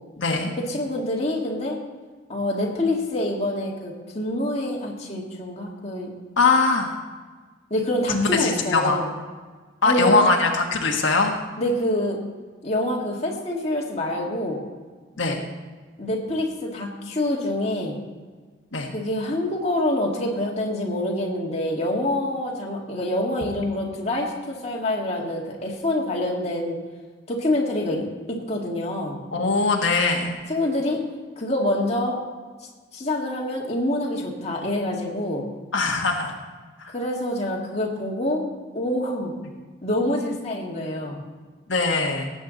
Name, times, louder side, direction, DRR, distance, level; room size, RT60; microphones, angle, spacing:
voice 1, 0.2-0.5 6.4-6.9 8.1-9.0 9.8-11.3 15.2-15.4 18.7-18.9 29.3-30.3 35.7-36.3 36.8-36.9 41.7-42.3, left 3 dB, 80° left, 1 dB, 1.4 m, -21 dB
voice 2, 0.7-1.8 2.3-6.1 7.7-9.1 9.8-10.1 11.6-12.2 12.6-14.6 16.0-18.0 18.9-26.8 27.3-28.0 28.5-29.2 30.5-31.0 31.4-32.2 32.9-35.4 36.9-38.4 38.7-39.3 39.8-41.2, left 1 dB, 35° left, -2 dB, 1.9 m, -26 dB
17.5 x 8.1 x 4.0 m, 1.4 s
head